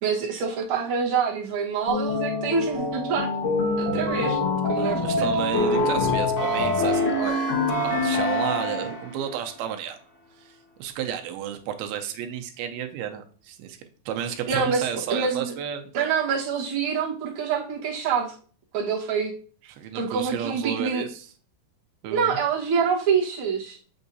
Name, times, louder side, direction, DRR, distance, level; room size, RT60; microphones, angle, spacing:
voice 1, 0.0-3.3 3.8-4.4 4.6-5.3 14.5-15.5 15.9-18.3 18.7-19.3 19.9-21.1 22.1-23.8, right 6 dB, 60° right, -3 dB, 1.3 m, -26 dB
sound 1, 1.9-9.2, left 2 dB, 50° left, 1.4 m, -25 dB
voice 2, 4.8-7.4 7.8-10.0 10.4-10.5 10.8-13.8 14.1-16.1 19.6-21.3 22.0-22.4, right 9 dB, 90° right, 6 dB, 2.5 m, -32 dB
6.9 x 5.5 x 2.6 m, 0.42 s
omnidirectional pair, 4.3 m